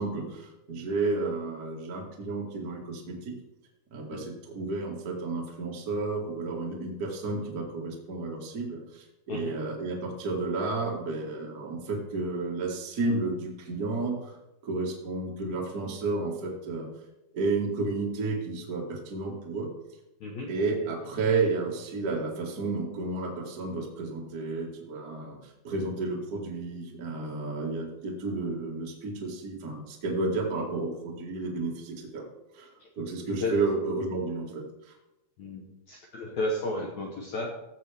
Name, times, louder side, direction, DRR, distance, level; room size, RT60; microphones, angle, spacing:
voice 1, 0.0-3.3 3.9-14.3 14.6-16.9 17.3-19.7 20.5-25.4 25.6-32.2 32.5-32.7 33.0-34.6, right 3 dB, 65° right, -1 dB, 0.9 m, -31 dB
voice 2, 35.9-37.5, left 2 dB, 75° left, 0 dB, 1.6 m, -33 dB
15.0 x 7.1 x 3.4 m, 0.95 s
omnidirectional pair, 4.7 m